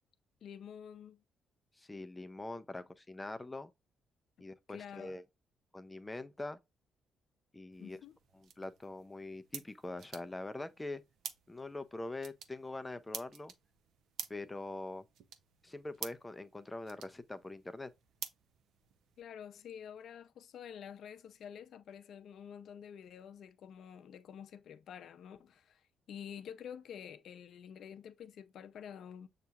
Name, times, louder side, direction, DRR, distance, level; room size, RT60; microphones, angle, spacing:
voice 1, 0.4-1.2 2.8-2.9 4.7-5.2 7.8-8.2 19.2-25.8 26.1-29.3, left 8 dB, 70° left, 0.5 m, -49 dB
voice 2, 1.8-3.7 4.4-5.2 5.7-6.6 7.5-8.0 8.3-11.0 11.5-13.5 14.3-15.1 15.6-17.9, left 2 dB, 15° left, 0.4 m, -43 dB
sound 1, 7.7-19.2, right 7 dB, 75° right, 0.5 m, -50 dB
6.7 x 2.8 x 2.3 m
cardioid pair, 90°, 0 cm